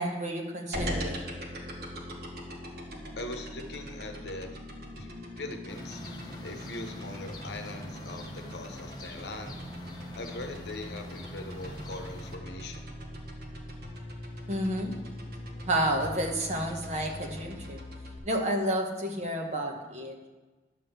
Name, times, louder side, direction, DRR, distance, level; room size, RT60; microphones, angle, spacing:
voice 1, 0.0-1.3 14.5-14.9 15.6-17.8 18.2-20.3, right 1 dB, 40° right, 1 dB, 1.3 m, -30 dB
sound 1, 0.7-18.2, equal, 60° right, 1.5 m, -41 dB
voice 2, 3.1-4.6 5.0-5.1 5.4-6.0 6.4-9.6 10.2-12.9, left 2 dB, 70° left, 5 dB, 0.9 m, -41 dB
sound 2, 5.7-12.4, left 1 dB, 25° left, 0.8 m, -45 dB
10.5 x 3.7 x 7.1 m, 1.2 s
head